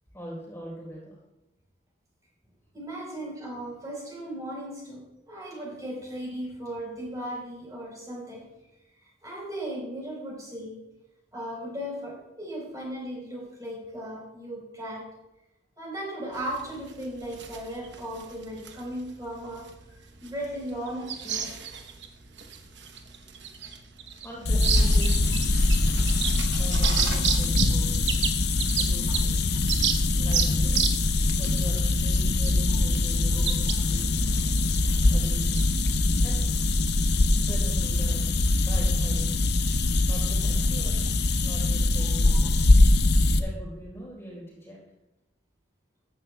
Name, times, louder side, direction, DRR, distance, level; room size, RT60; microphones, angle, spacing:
voice 1, 0.1-1.2 24.2-25.2 26.5-28.2 28.8-29.5 30.2-31.0 31.4-34.0 35.1-35.5 36.2-36.5 37.4-38.3 38.6-39.4 40.1-41.1 41.4-42.6 43.3-44.8, equal, 15° left, -4 dB, 3.8 m, -41 dB
voice 2, 2.7-8.4 9.0-10.8 11.3-15.0 15.8-21.6 27.3-27.4 42.2-42.4, right 1 dB, 20° right, -3 dB, 4.1 m, -37 dB
sound 1, 16.3-35.6, right 8 dB, 75° right, 1.0 m, -33 dB
sound 2, 24.5-43.4, left 2 dB, 60° left, 0.7 m, -23 dB
14.5 x 10.0 x 2.3 m, 0.94 s
head